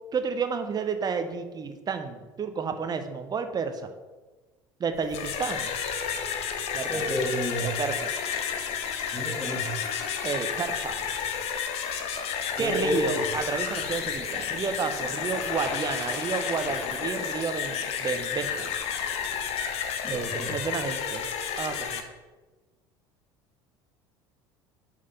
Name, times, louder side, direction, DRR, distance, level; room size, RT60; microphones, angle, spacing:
voice 1, 0.1-3.9 4.8-5.8 6.7-7.0 7.6-8.1 10.2-11.2 12.6-18.7 20.1-21.3 21.6-22.0, right 5 dB, 35° right, 8 dB, 0.9 m, -31 dB
sound 1, 5.0-22.0, left 7 dB, 55° left, 0.9 m, -31 dB
voice 2, 6.9-7.8 9.1-9.7 12.6-13.2 20.0-20.5, equal, 20° left, 0 dB, 2.2 m, -30 dB
5.7 x 4.8 x 5.5 m, 1.2 s
hypercardioid pair, 70°, 12 cm